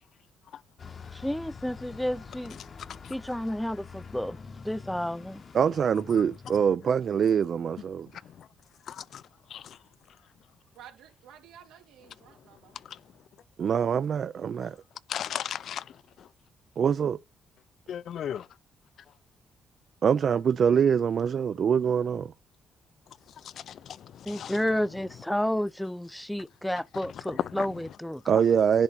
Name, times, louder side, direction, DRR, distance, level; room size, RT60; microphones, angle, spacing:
Bus, 0.8-6.7, left 5 dB, 40° left, 0.9 m, -46 dB
voice 1, 1.1-2.6 3.1-4.4 4.6-5.4 24.2-28.4, left 1 dB, 5° left, 0.4 m, -31 dB
voice 2, 5.5-8.1 13.6-14.8 16.8-17.2 20.0-22.3 28.3-28.8, right 7 dB, 55° right, 0.4 m, -24 dB
voice 3, 8.9-9.2 9.5-9.6 15.1-15.8 17.9-18.5 23.7-24.0 24.3-24.5, left 9 dB, 65° left, 0.5 m, -35 dB
voice 4, 10.7-12.8 17.9-18.0, right 9 dB, 90° right, 2.6 m, -52 dB
10.5 x 4.2 x 4.2 m
cardioid pair, 90°, 0 cm